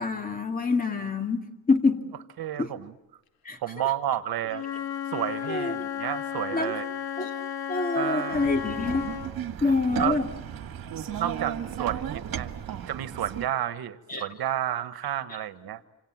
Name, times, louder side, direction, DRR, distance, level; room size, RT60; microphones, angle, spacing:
voice 1, 0.0-2.0 2.6-2.7 3.5-3.9 5.5-5.7 6.5-6.7 7.2-7.3 7.7-9.1 9.6-10.3 14.1-14.3, left 3 dB, 25° left, 5 dB, 2.5 m, -26 dB
voice 2, 2.4-2.9 3.6-4.6 5.1-6.9 7.9-8.5 9.6-10.2 11.2-12.5 12.9-15.8, right 11 dB, 80° right, 12 dB, 1.4 m, -31 dB
Wind instrument woodwind instrument, 4.5-9.3, left 9 dB, 75° left, 1.6 m, -34 dB
sound 1, 8.3-13.5, right 9 dB, 65° right, 2.0 m, -35 dB
26.5 x 26.5 x 7.4 m, 1.0 s
wide cardioid pair, 140°, 37 cm